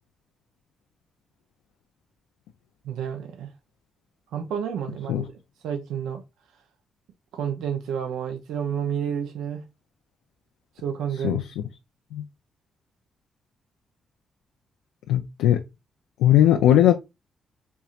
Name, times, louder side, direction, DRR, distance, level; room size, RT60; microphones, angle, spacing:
voice 1, 2.8-3.5 4.3-5.3 5.6-6.2 7.3-9.6 10.8-11.4, right 8 dB, 80° right, 0.5 m, -30 dB
voice 2, 15.1-15.6 16.2-17.0, left 12 dB, 85° left, 0.4 m, -18 dB
4.5 x 2.8 x 2.4 m
supercardioid pair, 50°, 0 cm